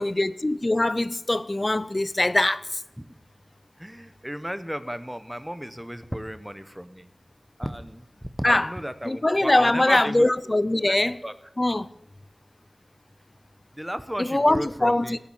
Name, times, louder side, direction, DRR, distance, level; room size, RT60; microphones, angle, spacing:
voice 1, 0.0-2.6 8.4-8.7 9.0-11.2 11.6-11.9 14.2-15.2, left 1 dB, 35° left, 0.5 m, -22 dB
voice 2, 3.8-7.1 7.6-8.1 8.4-11.0 11.2-11.3 13.7-15.2, equal, 5° right, 0.9 m, -34 dB
17.0 x 7.3 x 7.2 m
wide cardioid pair, 60°, 0 cm